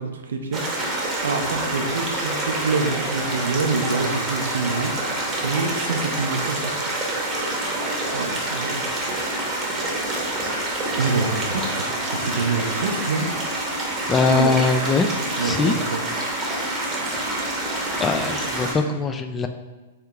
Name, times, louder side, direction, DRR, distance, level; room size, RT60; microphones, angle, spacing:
voice 1, 0.0-6.8 8.1-8.8 10.9-13.3 14.3-14.5 15.4-16.0, right 4 dB, 75° right, 4 dB, 0.5 m, -26 dB
sound 1, 0.5-18.7, right 1 dB, 20° right, 0.8 m, -27 dB
voice 2, 14.1-15.1 15.4-15.7 18.0-19.5, left 4 dB, 20° left, 7 dB, 0.3 m, -21 dB
3.6 x 2.9 x 3.4 m, 1.2 s
hypercardioid pair, 110°, 0 cm